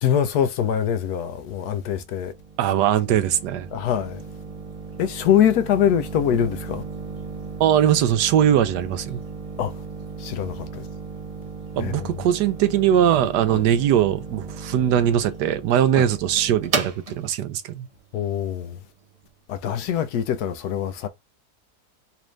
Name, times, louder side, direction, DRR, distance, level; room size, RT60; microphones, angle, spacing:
voice 1, 0.0-2.3 3.7-4.2 5.0-6.8 9.6-9.7 10.2-10.8 11.8-12.1 13.5-13.6 15.9-16.0 18.1-18.8 19.5-21.1, left 9 dB, 75° left, 1.1 m, -23 dB
sound 1, 1.7-19.3, right 4 dB, 50° right, 0.4 m, -36 dB
voice 2, 2.6-3.7 7.6-9.2 11.8-17.9, right 10 dB, 85° right, 1.2 m, -20 dB
4.1 x 2.5 x 3.1 m
omnidirectional pair, 1.7 m